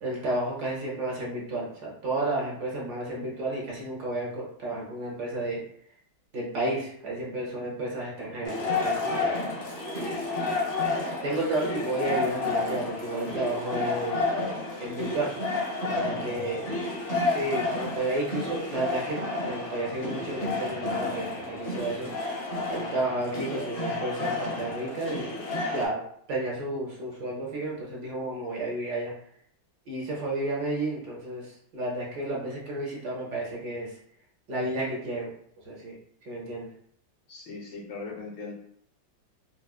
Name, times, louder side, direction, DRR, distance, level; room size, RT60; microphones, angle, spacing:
voice 1, 0.0-5.6 6.3-9.3 11.2-14.3 14.8-15.3 15.9-16.7 17.3-22.1 22.7-25.3 25.7-26.0 26.3-29.1 29.9-34.0 34.5-35.3 35.6-36.0 36.2-36.7, right 2 dB, 65° right, -4 dB, 1.3 m, -32 dB
sound 1, 8.4-25.9, left 3 dB, 40° left, 0.9 m, -31 dB
voice 2, 37.3-38.5, left 4 dB, 70° left, -1 dB, 1.3 m, -39 dB
4.7 x 2.0 x 2.3 m, 0.66 s
omnidirectional pair, 2.1 m